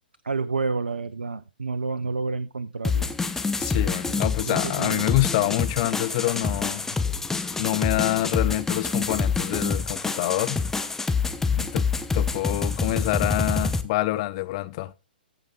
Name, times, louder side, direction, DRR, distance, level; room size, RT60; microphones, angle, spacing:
voice 1, 0.2-3.1 4.4-5.5, right 4 dB, 90° right, 0.6 m, -30 dB
sound 1, 2.8-13.8, left 4 dB, 5° left, 0.9 m, -27 dB
voice 2, 3.6-7.0 7.6-10.6 11.5-11.9 12.1-14.9, left 17 dB, 40° left, 0.8 m, -26 dB
14.5 x 5.2 x 3.8 m
hypercardioid pair, 125°, 5 cm